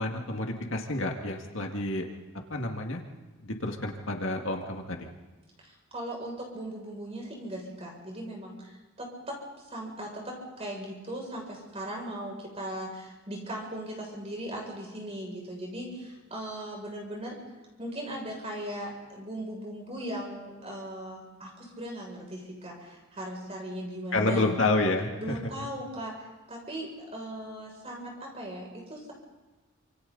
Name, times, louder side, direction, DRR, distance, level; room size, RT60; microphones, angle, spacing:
voice 1, 0.0-2.1 2.5-3.0 3.4-5.0 24.1-25.1, left 2 dB, 60° left, 2 dB, 2.2 m, -29 dB
voice 2, 5.6-17.4 17.8-24.6 25.2-29.1, right 1 dB, 30° right, -1 dB, 6.8 m, -38 dB
28.0 x 26.5 x 4.1 m, 1.2 s
head